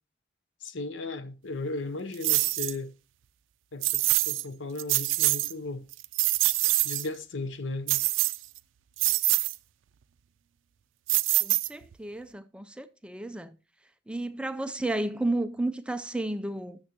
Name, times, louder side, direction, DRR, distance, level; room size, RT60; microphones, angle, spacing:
voice 1, 0.6-2.9 3.7-5.8 6.8-8.0, left 2 dB, 75° left, 0.8 m, -36 dB
sound 1, 2.2-2.8 3.8-4.4 4.8-5.5 5.9-7.1 7.9-8.6 9.0-9.6 11.1-11.9, right 19 dB, 80° right, 0.4 m, -25 dB
voice 2, 11.4-13.6 14.1-16.8, right 2 dB, 5° right, 0.4 m, -32 dB
13.0 x 6.3 x 2.9 m
head